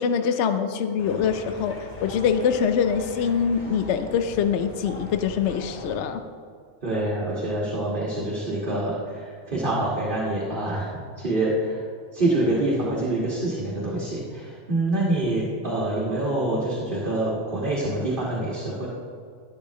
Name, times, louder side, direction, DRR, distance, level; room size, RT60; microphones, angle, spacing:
voice 1, 0.0-1.8 2.0-6.2, left 7 dB, 65° left, 9 dB, 0.9 m, -24 dB
sound 1, 1.0-6.0, left 1 dB, 80° left, 2.1 m, -40 dB
voice 2, 6.8-10.9 11.2-11.8 12.1-18.9, right 1 dB, 40° right, -6 dB, 1.9 m, -26 dB
12.0 x 11.5 x 3.1 m, 2.1 s
omnidirectional pair, 1.3 m